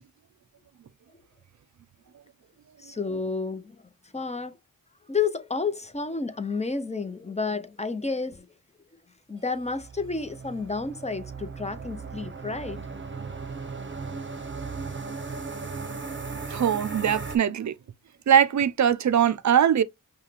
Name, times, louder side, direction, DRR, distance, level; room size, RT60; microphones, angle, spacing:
voice 1, 2.8-3.8 4.1-4.6 5.1-8.5 9.3-12.8, left 4 dB, 20° left, 0.7 m, -30 dB
sound 1, 9.5-17.4, right 4 dB, 35° right, 0.9 m, -37 dB
voice 2, 16.5-17.8 18.3-19.8, right 9 dB, 55° right, 0.5 m, -21 dB
5.5 x 2.3 x 3.3 m
cardioid pair, 55°, 35 cm